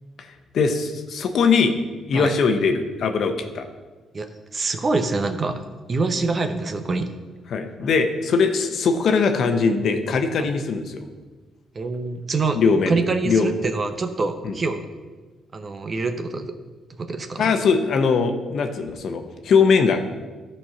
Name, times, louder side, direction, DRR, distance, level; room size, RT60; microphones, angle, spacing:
voice 1, 0.2-1.7 2.1-3.6 7.5-11.0 12.5-12.9 13.2-13.5 14.4-14.5 17.4-20.0, left 5 dB, 65° left, 6 dB, 0.9 m, -21 dB
voice 2, 4.1-5.6 5.9-7.1 10.4-10.5 11.7-12.6 12.9-14.8 15.5-16.5 17.0-17.5, right 3 dB, 40° right, 8 dB, 0.8 m, -25 dB
12.0 x 4.4 x 5.7 m, 1.3 s
cardioid pair, 90°, 0 cm